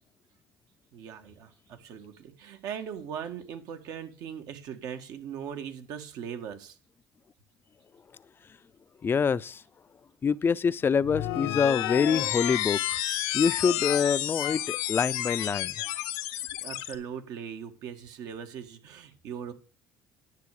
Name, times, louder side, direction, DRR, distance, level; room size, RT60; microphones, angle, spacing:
voice 1, 0.9-6.8 16.3-19.5, right 8 dB, 70° right, 1.6 m, -40 dB
voice 2, 9.0-9.6 10.2-13.0 13.3-15.8, left 6 dB, 35° left, 0.6 m, -26 dB
sound 1, 11.0-16.9, left 14 dB, 80° left, 1.0 m, -30 dB
10.5 x 6.8 x 4.8 m
supercardioid pair, 80°, 7 cm